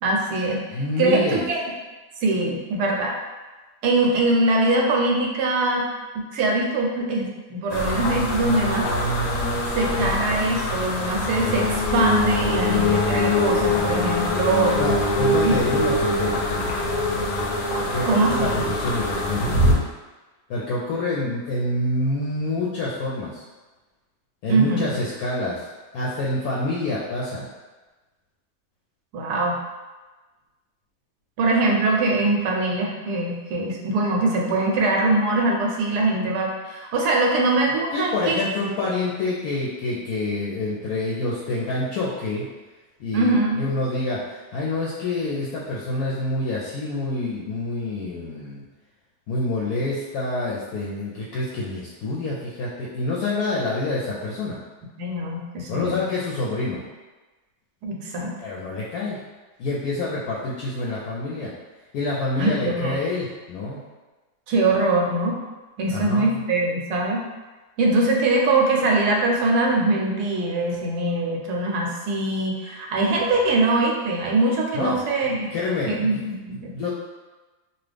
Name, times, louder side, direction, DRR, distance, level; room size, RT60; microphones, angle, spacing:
voice 1, 0.0-0.6 1.0-1.6 2.2-3.1 3.8-5.9 6.1-8.9 9.7-14.8 15.4-15.6 18.1-18.6 24.5-25.0 29.1-29.6 31.4-38.4 43.1-43.6 55.0-56.1 57.8-58.3 62.4-63.0 64.5-65.3 65.8-67.2 67.8-75.5 75.9-76.7, right 2 dB, 80° right, 0 dB, 1.1 m, -22 dB
voice 2, 0.7-1.4 14.8-17.0 17.8-19.6 20.5-23.4 24.4-25.7 25.9-27.5 37.9-42.5 43.0-48.7 49.3-54.6 55.7-56.8 58.4-59.2 59.6-61.5 61.9-63.8 65.9-66.4 74.7-75.0 75.5-76.2 76.7-76.9, left 2 dB, 75° left, -5 dB, 1.0 m, -27 dB
sound 1, 7.7-19.7, left 1 dB, 90° left, 1.2 m, -23 dB
2.9 x 2.3 x 3.3 m, 1.2 s
omnidirectional pair, 1.8 m